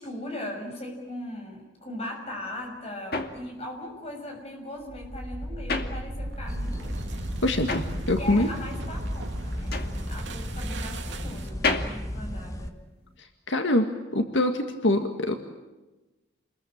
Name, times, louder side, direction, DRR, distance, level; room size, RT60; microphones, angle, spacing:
voice 1, 0.0-7.1 8.2-9.7 10.0-12.7, left 1 dB, 30° left, 3 dB, 6.5 m, -39 dB
sound 1, 2.3-6.6 6.9-13.2, left 3 dB, 50° left, 2.3 m, -34 dB
sound 2, 4.8-11.7, right 1 dB, 70° right, 2.6 m, -37 dB
sound 3, 6.5-12.7, equal, 15° left, 1.5 m, -35 dB
voice 2, 7.4-8.5 13.5-13.9 14.1-15.3, left 1 dB, 80° left, 5 dB, 2.0 m, -24 dB
28.5 x 22.0 x 8.8 m, 1.1 s
head